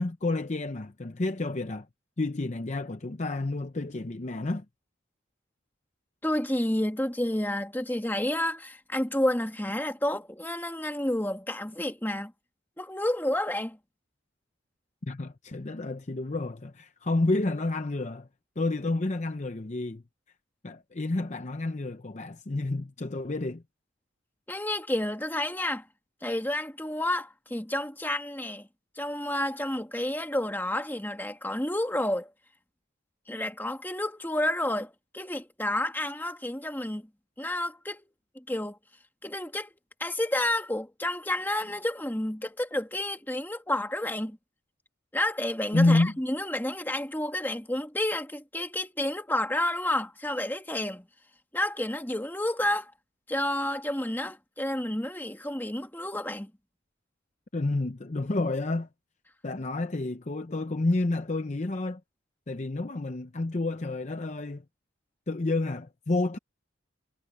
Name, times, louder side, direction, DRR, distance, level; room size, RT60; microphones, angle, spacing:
voice 1, 0.0-1.9 2.2-4.6 15.0-18.3 18.6-20.0 20.6-23.6 45.7-46.1 57.5-58.9 59.4-62.0 62.5-64.6 65.3-66.4, left 2 dB, 35° left, 0.6 m, -29 dB
voice 2, 6.2-12.3 12.8-13.8 24.5-25.9 26.2-28.7 29.0-32.3 33.3-37.1 37.4-38.0 38.4-38.8 39.2-39.7 40.0-44.4 45.1-51.1 51.5-52.9 53.3-56.5, left 1 dB, 10° left, 1.8 m, -30 dB
head